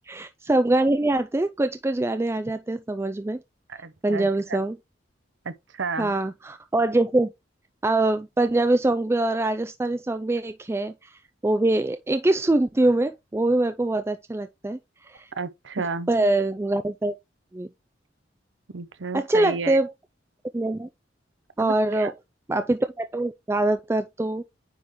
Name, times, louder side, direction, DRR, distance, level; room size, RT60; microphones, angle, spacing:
voice 1, 0.1-3.4 4.0-4.8 6.0-7.3 7.8-14.8 15.1-15.3 16.1-17.2 17.5-17.7 19.1-19.9 20.5-20.9 21.6-22.1 22.5-24.4, right 2 dB, 15° right, 0.3 m, -24 dB
voice 2, 3.7-4.6 5.4-6.2 15.4-16.1 18.7-19.8 21.6-22.1, right 4 dB, 90° right, 0.7 m, -32 dB
9.5 x 3.8 x 3.0 m
head